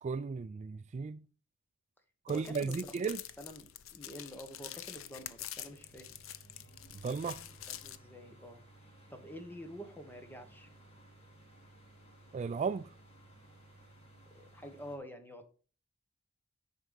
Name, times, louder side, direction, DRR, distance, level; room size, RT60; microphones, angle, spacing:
voice 1, 0.0-1.2 2.3-3.2 7.0-7.4 12.3-12.9, right 5 dB, 35° right, 0.3 m, -35 dB
sound 1, 2.3-8.0, left 11 dB, 70° left, 0.6 m, -47 dB
voice 2, 2.3-3.1 3.4-6.2 7.7-8.6 9.1-10.7 14.3-15.5, equal, 10° left, 1.3 m, -48 dB
sound 2, 5.6-15.0, right 1 dB, 30° left, 2.9 m, -58 dB
10.5 x 4.6 x 5.2 m
head